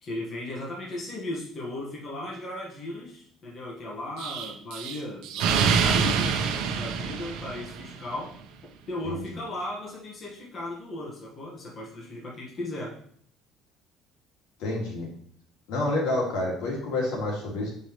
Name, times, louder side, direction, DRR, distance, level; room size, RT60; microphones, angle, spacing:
voice 1, 0.0-6.4 6.7-8.3 8.9-13.0, left 1 dB, 25° left, -4 dB, 1.5 m, -36 dB
Explosion, 4.2-8.0, right 6 dB, 65° right, 0.8 m, -26 dB
voice 2, 14.6-15.1 15.7-17.7, left 2 dB, 70° left, -2 dB, 2.2 m, -28 dB
6.8 x 5.4 x 3.1 m, 0.63 s
cardioid pair, 170°, 0 cm